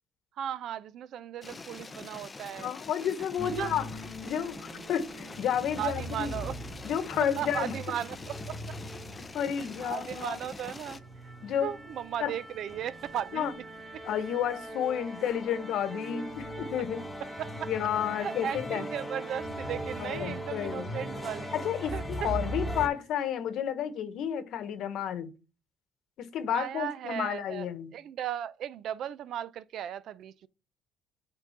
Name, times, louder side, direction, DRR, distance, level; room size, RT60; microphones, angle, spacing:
voice 1, 0.4-2.7 3.4-3.7 5.8-6.6 7.2-8.6 9.8-11.0 11.6-13.5 13.9-14.0 17.4-17.7 18.2-21.6 21.9-22.3 26.5-27.7 27.9-30.5, right 10 dB, 60° right, 0.4 m, -36 dB
sound 1, 1.4-11.0, left 3 dB, 20° left, 0.5 m, -45 dB
voice 2, 2.6-3.9 4.2-6.3 6.8-7.7 9.3-10.4 11.4-11.7 12.2-12.3 13.3-13.5 14.0-17.0 17.7-18.8 20.0-20.9 21.5-25.3 26.2-27.9, left 9 dB, 65° left, 1.0 m, -31 dB
sound 2, 3.4-22.9, equal, 5° left, 2.2 m, -40 dB
8.2 x 3.7 x 5.7 m
cardioid pair, 135°, 0 cm